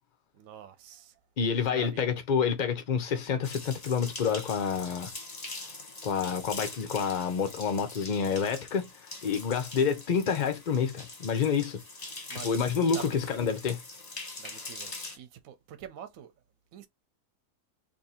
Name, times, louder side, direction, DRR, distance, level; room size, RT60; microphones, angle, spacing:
voice 1, 0.4-1.1 1.7-2.2 12.3-12.7 12.9-13.5 14.4-16.3 16.7-16.9, right 10 dB, 65° right, 0.9 m, -46 dB
voice 2, 1.4-5.1 6.0-8.9 9.2-11.8 12.3-13.8, left 6 dB, 65° left, 0.4 m, -28 dB
sound 1, 3.4-15.2, left 3 dB, 30° left, 0.8 m, -43 dB
2.7 x 2.7 x 4.1 m
omnidirectional pair, 1.8 m